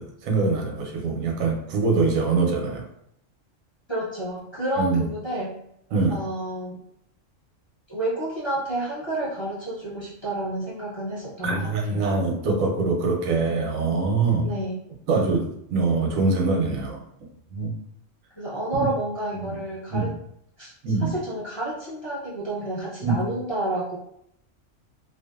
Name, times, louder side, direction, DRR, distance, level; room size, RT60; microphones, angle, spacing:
voice 1, 0.0-2.8 4.8-5.1 5.9-6.2 11.4-14.5 15.1-17.0 17.5-17.7 18.7-18.9 19.4-19.5 19.9-20.1 20.8-21.1 23.0-23.2, right 4 dB, 90° right, 1 dB, 1.0 m, -24 dB
voice 2, 3.9-5.5 6.1-6.8 7.9-12.0 14.4-14.8 18.4-20.1 20.6-20.7 21.0-24.0, right 1 dB, 35° left, -8 dB, 0.5 m, -30 dB
2.5 x 2.3 x 2.3 m, 0.73 s
omnidirectional pair, 1.4 m